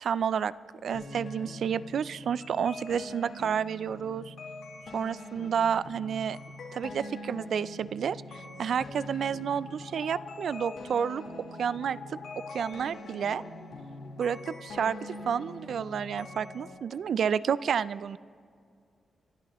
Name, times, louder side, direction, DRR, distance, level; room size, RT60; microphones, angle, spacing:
voice 1, 0.0-0.5 0.8-4.3 4.9-6.4 6.7-11.2 11.6-12.0 12.5-13.4 14.2-18.2, right 7 dB, 70° right, 17 dB, 0.3 m, -30 dB
sound 1, 0.9-16.7, left 2 dB, 75° left, 3.8 m, -43 dB
25.0 x 13.0 x 3.0 m, 2.3 s
wide cardioid pair, 120°, 0 cm